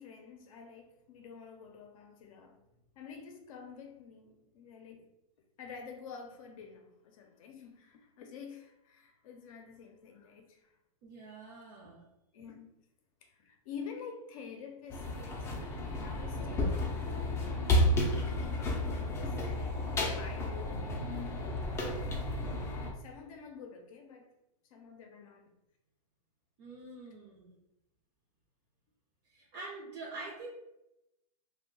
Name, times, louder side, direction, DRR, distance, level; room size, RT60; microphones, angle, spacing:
voice 1, 0.0-2.6 3.0-5.1 5.6-10.7 11.8-11.9 12.3-12.8 13.2-17.7 18.1-21.8 22.9-24.3 24.7-25.5, left 6 dB, 60° left, 3 dB, 0.6 m, -49 dB
voice 2, 11.0-12.1 26.6-27.6 29.3-30.5, right 3 dB, 40° right, -3 dB, 0.7 m, -46 dB
sound 1, 14.9-22.9, left 1 dB, 15° left, 0.5 m, -32 dB
2.5 x 2.2 x 3.8 m, 0.88 s
hypercardioid pair, 135°, 20 cm